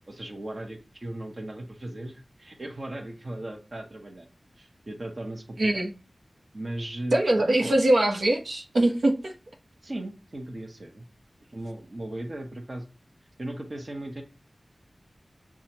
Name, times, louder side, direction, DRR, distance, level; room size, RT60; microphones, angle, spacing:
voice 1, 0.1-4.2 4.6-5.4 5.7-5.8 6.5-7.8 9.8-11.0 11.5-12.8 13.4-14.2, right 1 dB, 45° right, 1.1 m, -37 dB
voice 2, 5.6-5.9 7.1-9.3, right 1 dB, 80° right, 0.9 m, -22 dB
7.1 x 2.4 x 2.9 m
wide cardioid pair, 70°, 0 cm